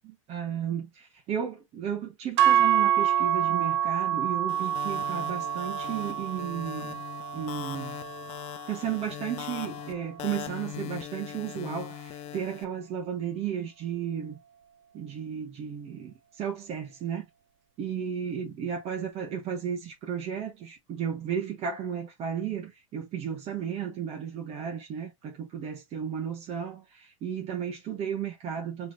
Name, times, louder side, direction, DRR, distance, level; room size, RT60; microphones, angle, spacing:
voice 1, 0.0-7.0 7.3-8.1 8.7-14.4 14.9-17.2 17.8-28.9, right 8 dB, 35° right, 1.2 m, -34 dB
sound 1, 2.4-10.6, right 10 dB, 55° right, 0.7 m, -28 dB
sound 2, 4.5-12.6, left 14 dB, 40° left, 0.7 m, -40 dB
4.6 x 3.5 x 2.5 m
hypercardioid pair, 95°, 18 cm